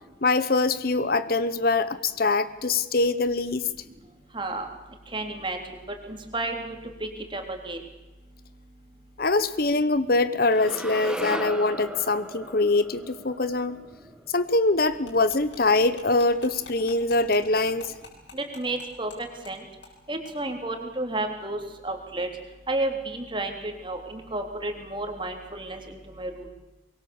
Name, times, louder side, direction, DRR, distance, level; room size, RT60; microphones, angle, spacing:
voice 1, 0.2-3.7 9.2-13.8 14.3-17.9, left 3 dB, 50° left, 14 dB, 0.9 m, -23 dB
voice 2, 4.3-4.7 5.1-5.6 6.1-6.8 7.0-7.8 18.3-19.1 19.5-19.6 20.1-22.3 22.7-26.5, right 2 dB, 25° right, 4 dB, 3.5 m, -31 dB
sound 1, 10.5-14.7, equal, 5° right, 1.4 m, -37 dB
sound 2, 14.8-19.2 19.4-19.5 19.8-20.0 20.2-20.3, left 4 dB, 75° left, 7.8 m, -45 dB
24.5 x 22.5 x 7.2 m, 1.1 s
head